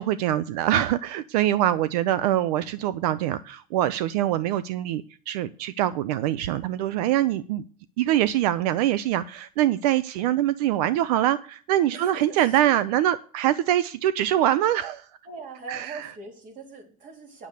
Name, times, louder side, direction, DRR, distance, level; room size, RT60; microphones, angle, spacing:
voice 1, 0.0-7.6 8.0-15.1 15.7-16.1, right 12 dB, 85° right, 16 dB, 0.6 m, -24 dB
voice 2, 11.9-12.6 15.3-17.5, right 3 dB, 40° right, 3 dB, 3.8 m, -41 dB
9.6 x 7.0 x 6.6 m, 0.42 s
supercardioid pair, 135°, 20 cm